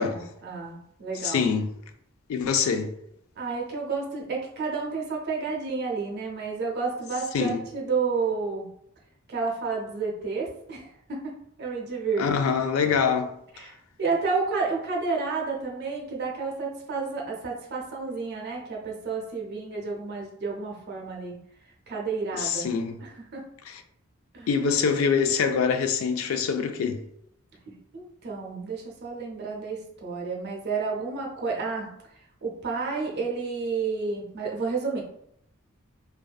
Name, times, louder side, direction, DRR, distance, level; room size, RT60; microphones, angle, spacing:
voice 1, 0.0-1.5 3.4-8.7 9.3-12.3 13.5-21.4 21.9-22.7 23.0-23.4 24.3-24.5 27.7-31.9 32.4-35.0, right 4 dB, 55° right, 0.5 m, -31 dB
voice 2, 1.2-1.7 2.3-2.9 7.3-7.6 12.2-13.3 22.4-23.0 23.7-23.8 24.5-27.0, left 6 dB, 80° left, 0.3 m, -24 dB
2.5 x 2.2 x 2.3 m
head